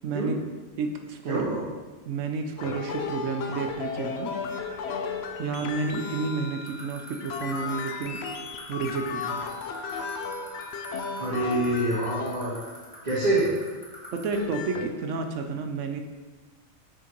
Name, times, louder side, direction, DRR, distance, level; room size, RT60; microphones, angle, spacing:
voice 1, 0.0-0.3 0.8-1.5 2.1-4.4 5.4-8.2 8.7-9.4 14.1-16.0, right 4 dB, 70° right, 5 dB, 0.9 m, -31 dB
voice 2, 1.3-1.6 11.2-12.5 13.0-13.5, right 1 dB, 50° right, -14 dB, 2.4 m, -26 dB
sound 1, 2.6-13.1 14.1-14.9, left 5 dB, 60° left, 0.7 m, -35 dB
sound 2, 6.7-14.3, equal, 5° right, 2.2 m, -44 dB
6.5 x 6.4 x 3.0 m, 1.3 s
omnidirectional pair, 1.4 m